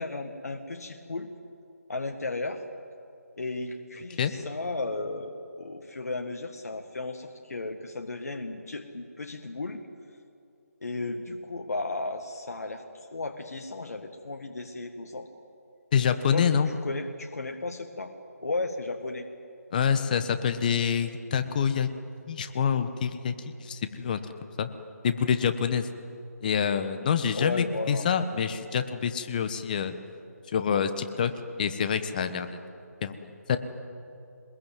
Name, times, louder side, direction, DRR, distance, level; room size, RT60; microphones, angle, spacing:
voice 1, 0.0-1.3 1.9-2.6 3.4-9.8 10.8-15.3 16.3-18.1 18.4-19.3 27.3-28.1, left 3 dB, 70° left, 4 dB, 1.8 m, -34 dB
voice 2, 15.9-16.7 19.7-21.9 22.3-23.3 23.6-24.2 24.6-24.7 25.0-25.9 26.4-29.9 30.5-31.3 31.6-32.5 33.0-33.6, left 7 dB, 30° left, 10 dB, 1.3 m, -26 dB
23.0 x 21.0 x 9.3 m, 2.6 s
figure-of-eight pair, 160°, 9 cm